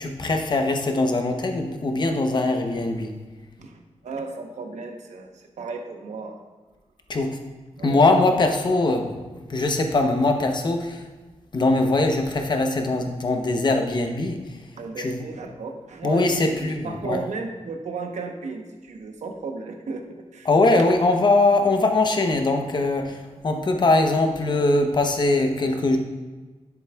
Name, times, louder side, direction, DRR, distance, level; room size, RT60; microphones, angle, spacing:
voice 1, 0.0-3.1 7.1-7.4 7.8-9.1 9.5-11.0 11.5-14.4 15.0-15.2 16.0-17.2 20.5-26.0, left 2 dB, 40° left, 4 dB, 0.8 m, -21 dB
voice 2, 3.6-6.4 7.8-8.4 14.7-20.0 20.3-20.5, right 4 dB, 85° right, 3 dB, 0.9 m, -35 dB
11.0 x 7.2 x 2.3 m, 1.3 s
wide cardioid pair, 155°, 12 cm